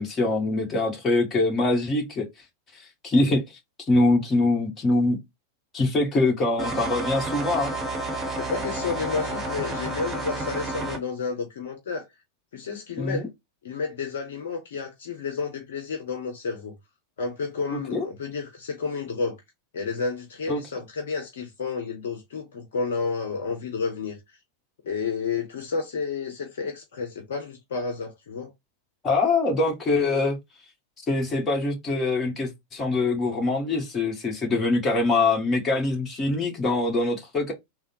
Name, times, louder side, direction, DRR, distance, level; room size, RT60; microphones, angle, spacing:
voice 1, 0.0-2.3 2.7-3.4 3.9-5.2 5.7-7.7 13.0-13.3 17.9-18.1 20.5-20.6 29.0-30.4 31.1-37.5, left 2 dB, 20° left, 1.5 m, -23 dB
sound 1, 6.6-11.0, right 2 dB, 20° right, 0.9 m, -30 dB
voice 2, 8.4-12.1 12.5-13.3 13.6-16.7 17.2-19.4 19.7-24.2 24.8-28.5, left 5 dB, 60° left, 0.8 m, -31 dB
3.5 x 2.0 x 4.3 m
figure-of-eight pair, 90°, 0 cm